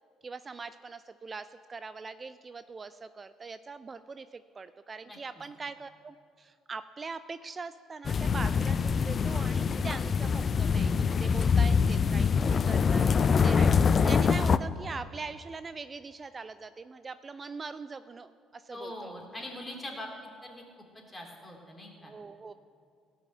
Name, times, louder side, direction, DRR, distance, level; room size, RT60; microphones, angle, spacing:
voice 1, 0.2-13.1 13.4-19.1 22.0-22.5, right 4 dB, 35° right, 13 dB, 0.4 m, -42 dB
sound 1, 8.0-14.6, left 6 dB, 40° left, 0.4 m, -24 dB
voice 2, 18.7-20.1 20.4-20.6 20.9-22.1, left 1 dB, 20° left, -1 dB, 3.5 m, -42 dB
17.0 x 5.7 x 8.0 m, 2.4 s
hypercardioid pair, 50°, 0 cm